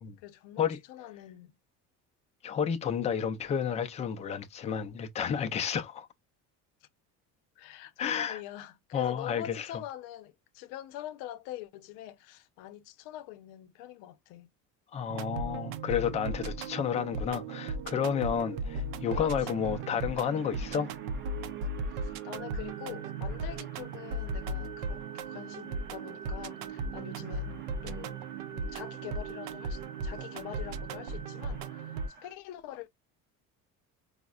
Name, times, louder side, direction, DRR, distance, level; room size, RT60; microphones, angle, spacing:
voice 1, 0.2-1.6 6.8-6.9 7.6-14.5 19.1-19.7 21.8-27.5 27.8-28.2 28.5-32.9, left 13 dB, 80° left, 0.7 m, -44 dB
voice 2, 2.4-6.1 8.0-8.4 8.9-9.7 14.9-20.9, left 7 dB, 20° left, 0.3 m, -31 dB
sound 1, 15.1-32.1, right 3 dB, 90° right, 0.5 m, -37 dB
sound 2, 18.7-32.3, right 5 dB, 35° right, 0.6 m, -50 dB
5.0 x 2.1 x 2.3 m
cardioid pair, 175°, 32 cm